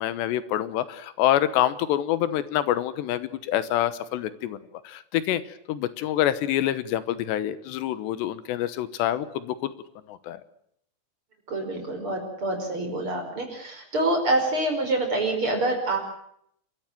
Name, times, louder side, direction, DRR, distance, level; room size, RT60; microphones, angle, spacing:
voice 1, 0.0-4.6 4.8-9.7 10.1-10.4, left 12 dB, 85° left, 14 dB, 3.3 m, -26 dB
voice 2, 11.5-16.0, right 2 dB, 30° right, 3 dB, 5.9 m, -26 dB
29.5 x 13.5 x 9.1 m, 0.70 s
omnidirectional pair, 4.9 m